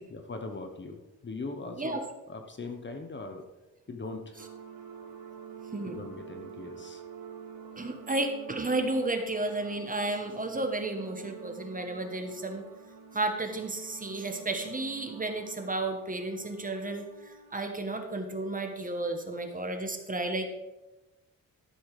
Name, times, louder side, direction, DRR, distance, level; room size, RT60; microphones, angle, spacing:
voice 1, 0.1-2.0 2.3-3.5 3.9-4.4 5.8-7.0, left 3 dB, 30° left, 5 dB, 1.1 m, -40 dB
sound 1, 4.4-18.0, right 7 dB, 75° right, 2.0 m, -48 dB
voice 2, 7.8-12.6 13.1-20.5, right 2 dB, 25° right, 5 dB, 1.3 m, -32 dB
13.0 x 7.2 x 4.9 m, 1.0 s
wide cardioid pair, 125°, 36 cm